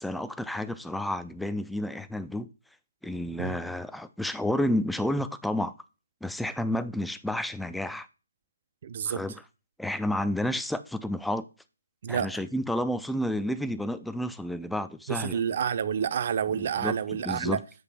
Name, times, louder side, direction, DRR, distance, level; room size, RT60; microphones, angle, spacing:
voice 1, 0.0-2.5 3.0-5.7 6.2-8.1 9.1-9.3 9.8-11.5 12.1-15.4 16.6-16.9 17.2-17.6, left 1 dB, ahead, 0.3 m, -30 dB
voice 2, 8.8-9.2 12.0-12.3 15.1-17.6, right 7 dB, 45° right, 0.6 m, -29 dB
7.9 x 3.3 x 5.7 m
figure-of-eight pair, 145°, 0 cm